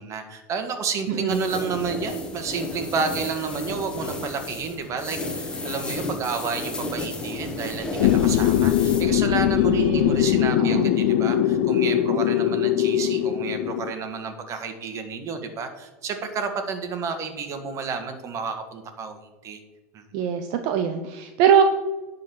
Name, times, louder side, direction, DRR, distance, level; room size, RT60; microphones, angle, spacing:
voice 1, 0.0-19.6 19.9-20.0, right 5 dB, 40° right, 7 dB, 1.7 m, -31 dB
voice 2, 1.1-1.4 9.6-10.2 10.6-10.9 20.1-21.6, right 8 dB, 60° right, 6 dB, 0.9 m, -22 dB
sound 1, 1.3-9.0, left 2 dB, 10° left, 1.7 m, -33 dB
sound 2, 8.0-13.9, left 11 dB, 70° left, 0.7 m, -21 dB
10.5 x 4.2 x 7.1 m, 1.2 s
supercardioid pair, 115°, 8 cm